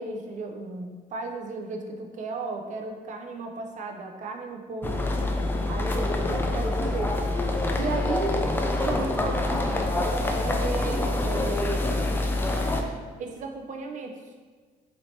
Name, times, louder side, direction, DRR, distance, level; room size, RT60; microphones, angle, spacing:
voice 1, 0.0-5.0 5.7-7.1 7.7-8.5 8.8-12.1 13.2-14.2, right 3 dB, 45° right, 3 dB, 0.5 m, -35 dB
sound 1, 4.8-12.8, left 2 dB, 10° left, 0.3 m, -26 dB
3.2 x 2.8 x 4.1 m, 1.5 s
cardioid pair, 110°, 17 cm